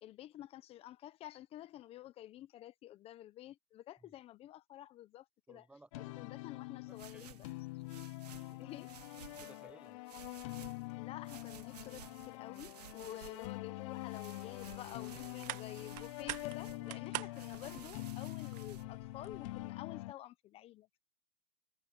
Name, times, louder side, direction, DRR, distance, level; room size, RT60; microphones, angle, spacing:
voice 1, 0.0-5.7 6.2-7.5 8.6-8.9 11.0-21.0, left 13 dB, 30° left, 1.0 m, -50 dB
voice 2, 5.5-6.3 6.8-7.5 8.3-8.7 9.3-10.0 16.8-17.0, right 2 dB, 5° right, 1.1 m, -60 dB
sound 1, 5.9-20.1, left 21 dB, 55° left, 0.6 m, -45 dB
sound 2, 6.9-9.7 10.1-10.9 11.2-13.6 13.9-16.8 17.3-18.8, right 11 dB, 85° right, 2.6 m, -56 dB
sound 3, 14.5-19.7, right 21 dB, 40° right, 1.4 m, -47 dB
hypercardioid pair, 135°, 20 cm